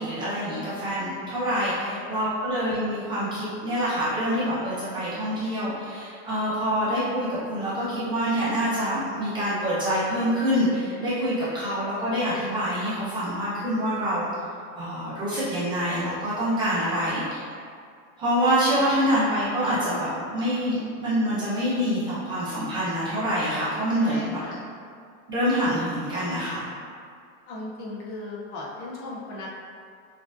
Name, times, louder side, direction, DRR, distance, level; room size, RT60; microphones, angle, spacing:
voice 1, 0.0-14.3 14.7-17.4 18.2-24.4 25.3-26.7, equal, 10° right, -11 dB, 0.5 m, -26 dB
voice 2, 1.7-2.3 16.8-17.1 18.8-18.9 24.0-24.6 27.5-29.5, left 2 dB, 40° left, -5 dB, 0.5 m, -38 dB
6.1 x 2.4 x 2.4 m, 2.2 s
supercardioid pair, 180°, 38 cm